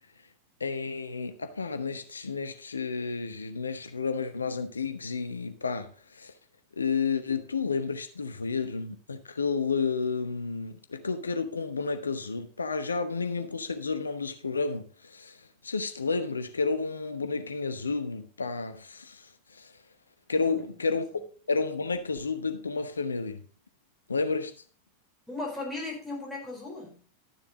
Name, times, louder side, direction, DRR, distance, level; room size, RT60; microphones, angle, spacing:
voice 1, 0.6-5.9 6.2-6.3 6.8-15.4 15.6-19.3 19.6-19.7 20.3-21.1 21.5-23.4 24.1-24.5, left 4 dB, 75° left, 0.9 m, -31 dB
voice 2, 20.3-20.6 25.3-27.0, left 2 dB, ahead, 4.5 m, -37 dB
12.0 x 7.0 x 3.8 m
figure-of-eight pair, 90°, 0 cm